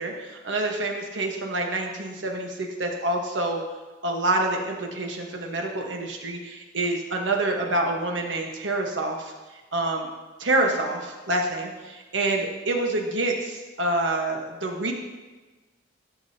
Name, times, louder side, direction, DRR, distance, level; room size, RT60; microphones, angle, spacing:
voice 1, 0.0-3.6 4.0-10.1 10.4-14.9, right 2 dB, 85° right, 1 dB, 1.2 m, -27 dB
12.5 x 6.2 x 2.8 m, 1.3 s
head